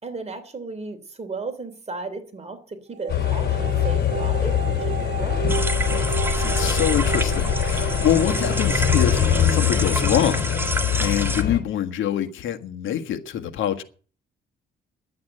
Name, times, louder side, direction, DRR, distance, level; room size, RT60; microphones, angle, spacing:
voice 1, 0.0-5.5 8.3-8.5, right 3 dB, 35° right, 3.1 m, -35 dB
sound 1, 2.9-9.0, right 11 dB, 70° right, 1.7 m, -33 dB
sound 2, 3.1-11.6, left 9 dB, 55° left, 4.8 m, -23 dB
sound 3, 5.5-11.4, right 2 dB, 10° right, 1.9 m, -29 dB
voice 2, 6.0-13.8, left 10 dB, 80° left, 1.6 m, -25 dB
11.0 x 8.7 x 8.7 m
cardioid pair, 90°, 20 cm